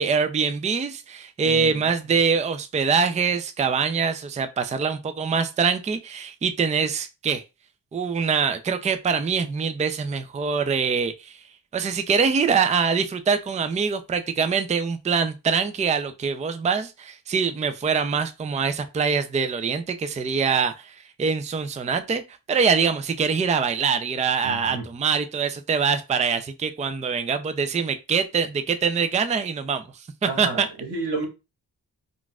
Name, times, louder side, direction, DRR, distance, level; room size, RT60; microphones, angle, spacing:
voice 1, 0.0-7.4 7.9-11.4 11.7-22.2 22.5-29.8 30.2-30.7, right 5 dB, 20° right, 0.4 m, -24 dB
voice 2, 1.4-1.8 24.4-24.8 30.2-31.3, right 3 dB, 85° right, 1.3 m, -31 dB
3.7 x 2.5 x 2.4 m
cardioid pair, 50°, 40 cm